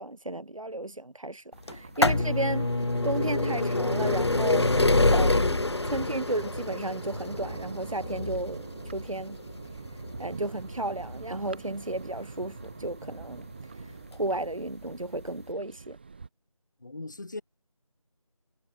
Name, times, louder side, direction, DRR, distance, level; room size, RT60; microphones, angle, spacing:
voice 1, 0.0-4.7 5.1-9.4 10.2-13.5 13.7-16.0, right 2 dB, 65° right, 4.7 m, -34 dB
Thunder, 1.5-16.3, right 4 dB, 15° right, 3.9 m, -42 dB
sound 1, 1.7-13.3 14.1-14.2 15.2-15.3 15.5-15.6, left 2 dB, 50° left, 1.1 m, -27 dB
voice 2, 16.8-17.4, left 2 dB, 30° left, 2.4 m, -39 dB
figure-of-eight pair, 175°, 18 cm